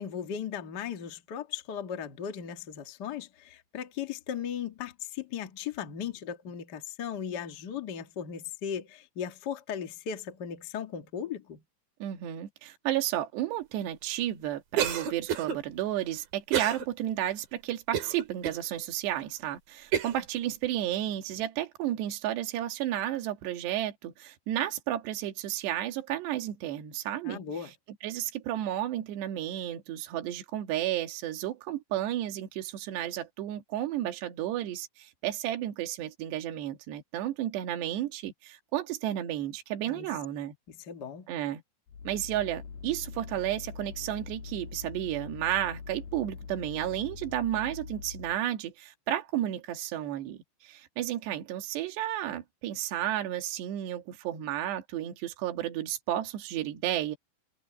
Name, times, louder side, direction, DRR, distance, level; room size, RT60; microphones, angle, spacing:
voice 1, 0.0-11.6 27.2-27.7 39.9-40.1 40.7-41.3, left 8 dB, 75° left, 0.9 m, -37 dB
voice 2, 12.0-27.7 28.0-40.5 41.3-41.6 42.1-57.2, right 12 dB, 80° right, 4.0 m, -32 dB
Cough, 14.8-15.6 16.5-16.9 17.3-17.4 17.9-18.6 19.2-19.3 19.9-20.2, right 9 dB, 60° right, 4.0 m, -29 dB
sound 1, 41.9-48.4, left 5 dB, 60° left, 5.0 m, -43 dB
omnidirectional pair, 4.9 m